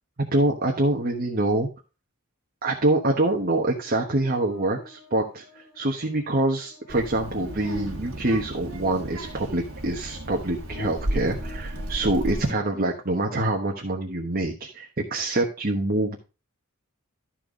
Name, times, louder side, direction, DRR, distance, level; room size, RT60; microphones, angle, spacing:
voice 1, 0.3-1.7 2.6-5.4 5.7-16.2, right 2 dB, 40° right, 1 dB, 1.2 m, -25 dB
Buzz, 3.4-12.8, left 2 dB, 45° left, 2.2 m, -45 dB
Child speech kid speaking, 6.9-12.5, right 1 dB, 65° right, 1.8 m, -34 dB
12.5 x 4.5 x 5.1 m, 0.32 s
head